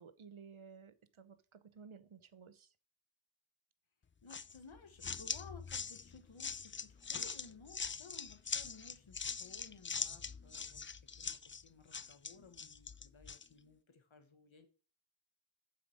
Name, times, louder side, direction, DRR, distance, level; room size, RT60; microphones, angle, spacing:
voice 1, 0.0-2.7, right 6 dB, 85° right, 13 dB, 0.9 m, -56 dB
voice 2, 4.2-10.8 11.2-14.7, left 4 dB, 75° left, 8 dB, 1.4 m, -58 dB
sound 1, 4.3-13.5, left 5 dB, 25° left, 0.4 m, -42 dB
7.5 x 5.8 x 5.0 m, 0.38 s
wide cardioid pair, 55°, 47 cm